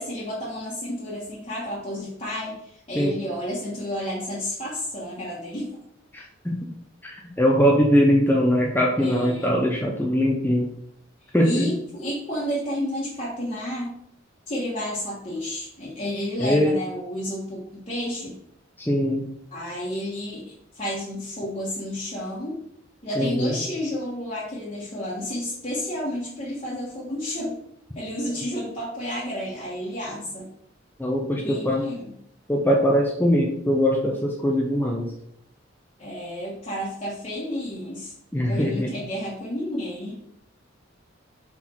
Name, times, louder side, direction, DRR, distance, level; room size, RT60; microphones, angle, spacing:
voice 1, 0.0-5.7 9.0-9.6 11.4-13.9 14.5-18.4 19.5-20.4 20.7-22.6 23.0-27.5 27.9-30.5 31.4-32.1 36.0-38.1 38.5-40.2, left 1 dB, 30° left, -7 dB, 1.5 m, -31 dB
voice 2, 2.9-3.2 6.1-6.7 7.0-10.7 11.3-11.7 16.4-16.7 18.8-19.2 23.2-23.6 31.0-31.9 32.5-35.1 38.3-38.9, equal, 10° left, -1 dB, 0.7 m, -22 dB
5.6 x 4.2 x 4.5 m, 0.71 s
head